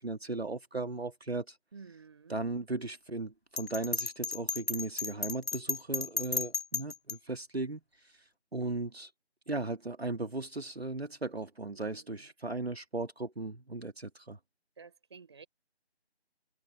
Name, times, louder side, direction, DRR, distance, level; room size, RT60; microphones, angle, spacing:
voice 1, 0.0-1.6 2.3-9.1 9.5-14.4, right 2 dB, 65° right, 2.0 m, -37 dB
voice 2, 1.7-2.4 11.7-12.3 14.8-15.5, right 5 dB, 25° right, 5.3 m, -52 dB
Bell, 3.6-7.2, left 4 dB, 65° left, 2.8 m, -34 dB
figure-of-eight pair, 165°, 33 cm